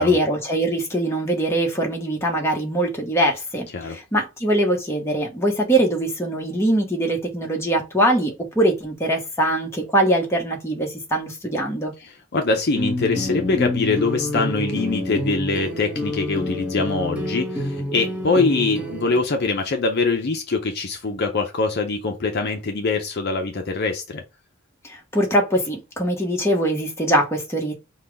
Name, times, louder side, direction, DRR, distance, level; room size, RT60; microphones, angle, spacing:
voice 1, 0.0-11.9 24.8-27.7, right 1 dB, 10° left, 1.1 m, -22 dB
voice 2, 12.0-24.2, left 3 dB, 50° left, 0.6 m, -23 dB
sound 1, 12.7-19.2, left 1 dB, 5° right, 1.1 m, -27 dB
5.7 x 2.3 x 3.4 m
head